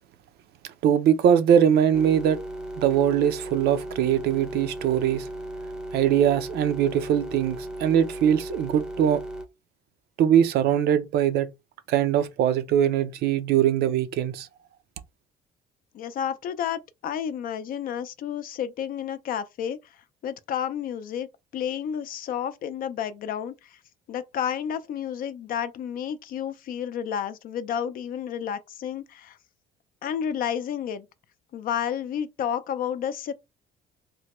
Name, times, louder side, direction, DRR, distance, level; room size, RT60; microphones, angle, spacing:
voice 1, 0.8-2.4 2.8-5.3 5.9-9.2 10.2-11.5 11.9-14.5, right 9 dB, 70° right, 0.5 m, -22 dB
sound 1, 1.9-9.4, right 1 dB, 5° right, 0.6 m, -36 dB
voice 2, 15.9-19.8 20.2-21.3 21.5-23.8 24.1-29.4 30.0-31.1 31.5-33.3, left 9 dB, 55° left, 0.5 m, -31 dB
3.3 x 2.1 x 2.9 m
cardioid pair, 110°, 17 cm